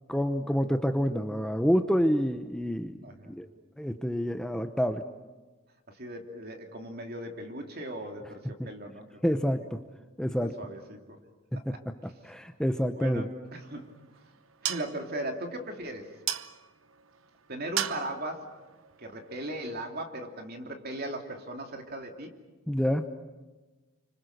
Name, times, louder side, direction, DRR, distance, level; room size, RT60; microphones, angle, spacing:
voice 1, 0.1-3.0 3.3-3.5 3.8-5.0 8.6-8.7 9.2-9.8 10.2-10.5 11.5-13.3 22.7-23.1, equal, 5° left, 7 dB, 0.8 m, -28 dB
voice 2, 3.0-3.3 5.9-9.6 10.4-11.0 11.5-11.6 12.9-13.9 14.6-16.1 17.5-18.5 19.0-22.3, right 1 dB, 45° right, 3 dB, 3.0 m, -38 dB
sound 1, 13.5-19.9, right 10 dB, 70° right, 0.9 m, -39 dB
30.0 x 25.5 x 6.7 m, 1.2 s
head